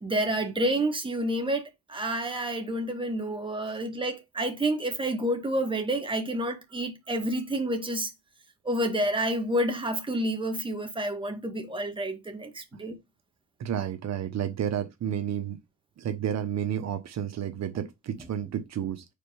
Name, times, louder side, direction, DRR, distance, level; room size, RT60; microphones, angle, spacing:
voice 1, 0.0-1.6 1.9-8.1 8.7-12.9, right 1 dB, 15° right, 1.9 m, -29 dB
voice 2, 13.6-15.6 16.0-19.0, right 9 dB, 60° right, 1.1 m, -31 dB
5.2 x 4.3 x 5.2 m
cardioid pair, 90°, 30 cm